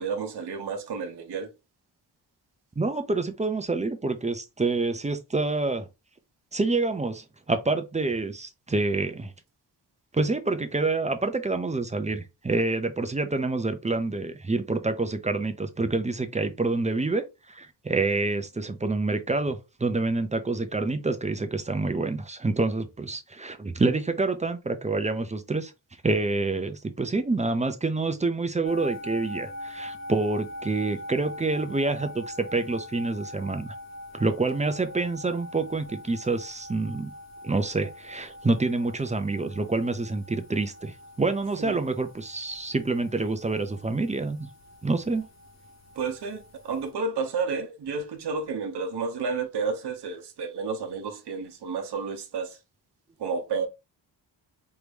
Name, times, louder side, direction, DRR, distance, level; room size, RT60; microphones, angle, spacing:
voice 1, 0.0-1.5 41.6-41.7 46.0-52.6 53.2-53.7, right 5 dB, 65° right, 0.8 m, -31 dB
voice 2, 2.8-5.9 6.5-9.3 10.1-25.7 26.0-33.7 34.2-37.1 37.4-44.5 44.8-45.3, right 3 dB, 15° right, 0.4 m, -27 dB
sound 1, 28.6-46.9, left 1 dB, 35° left, 1.0 m, -43 dB
4.6 x 2.6 x 3.4 m
wide cardioid pair, 180°, 44 cm